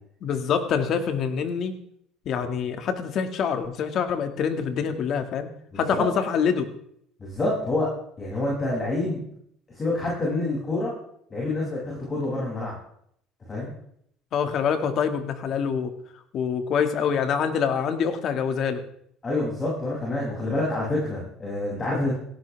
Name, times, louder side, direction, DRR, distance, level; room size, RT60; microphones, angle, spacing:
voice 1, 0.2-1.7 2.3-5.5 5.8-6.7 14.3-15.9 16.3-18.8, left 7 dB, 50° left, 8 dB, 2.2 m, -25 dB
voice 2, 5.7-6.1 7.2-7.9 8.2-9.2 9.7-10.9 11.3-12.7 13.5-13.7 19.2-22.1, left 2 dB, 25° left, -5 dB, 7.4 m, -27 dB
17.5 x 16.5 x 3.6 m, 0.68 s
cardioid pair, 120°, 0 cm